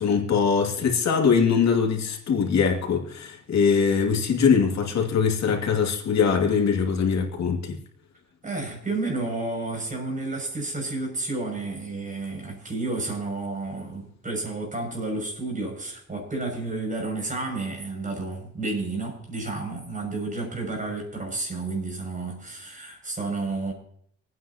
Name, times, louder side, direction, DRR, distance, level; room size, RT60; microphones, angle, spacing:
voice 1, 0.0-7.8, left 6 dB, 60° left, 1 dB, 2.5 m, -22 dB
voice 2, 8.4-23.7, right 2 dB, 25° right, 2 dB, 6.8 m, -31 dB
27.5 x 9.4 x 2.9 m, 0.65 s
cardioid pair, 90°, 30 cm